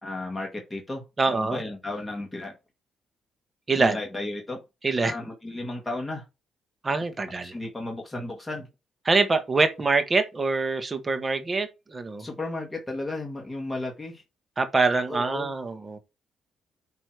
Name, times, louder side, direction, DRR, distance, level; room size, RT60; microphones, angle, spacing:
voice 1, 0.0-1.0 1.3-2.5 3.8-4.6 5.0-6.2 7.4-8.7 12.2-14.2 15.1-15.5, left 2 dB, 15° left, 2.0 m, -34 dB
voice 2, 1.2-1.6 3.7-4.0 4.8-5.1 6.8-7.5 9.0-12.3 14.6-16.0, right 3 dB, 25° right, 1.2 m, -24 dB
9.0 x 3.1 x 4.7 m
cardioid pair, 90°, 0 cm